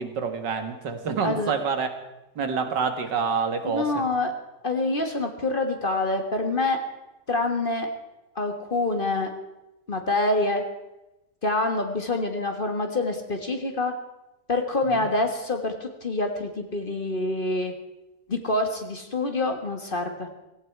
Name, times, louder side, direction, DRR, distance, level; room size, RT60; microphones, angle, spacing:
voice 1, 0.0-1.9 2.4-4.0 14.9-15.1, right 5 dB, 85° right, 7 dB, 2.3 m, -27 dB
voice 2, 1.2-1.5 3.7-4.3 4.6-6.8 7.3-7.9 8.3-9.3 9.9-10.6 11.4-13.9 14.5-17.7 18.3-20.3, left 2 dB, 30° left, 5 dB, 1.7 m, -26 dB
17.0 x 16.0 x 4.6 m, 0.98 s
omnidirectional pair, 1.8 m